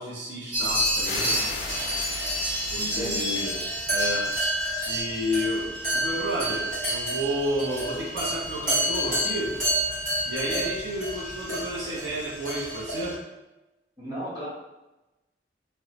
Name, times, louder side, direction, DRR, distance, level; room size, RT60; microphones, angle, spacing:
voice 1, 0.0-1.4 2.7-3.6 3.9-4.3 4.8-9.6 10.3-13.2, equal, 75° right, -5 dB, 0.6 m, -31 dB
sound 1, 0.5-13.1, equal, 45° right, 1.3 m, -29 dB
sound 2, 1.0-4.7, left 4 dB, 55° left, 0.3 m, -38 dB
voice 2, 2.7-3.5 14.0-14.5, equal, 25° right, -9 dB, 1.1 m, -34 dB
2.9 x 2.1 x 2.8 m, 1.0 s
head